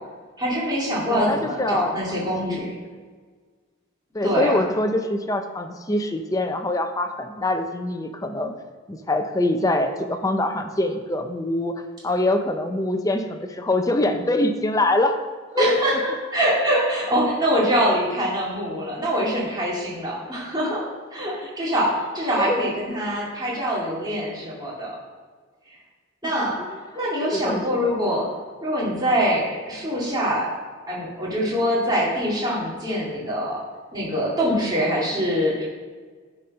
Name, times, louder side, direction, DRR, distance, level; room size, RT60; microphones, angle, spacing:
voice 1, 0.4-2.7 4.2-4.6 15.6-20.8 21.1-25.0 26.2-28.3 28.6-30.5 30.9-33.6 33.9-35.7, equal, 20° right, -6 dB, 2.3 m, -24 dB
voice 2, 1.1-1.9 2.4-2.7 4.1-8.5 8.9-11.7 12.0-15.2 15.5-15.8 22.4-22.6 27.3-28.0, left 1 dB, 15° left, 6 dB, 0.6 m, -24 dB
9.8 x 4.3 x 5.4 m, 1.5 s
head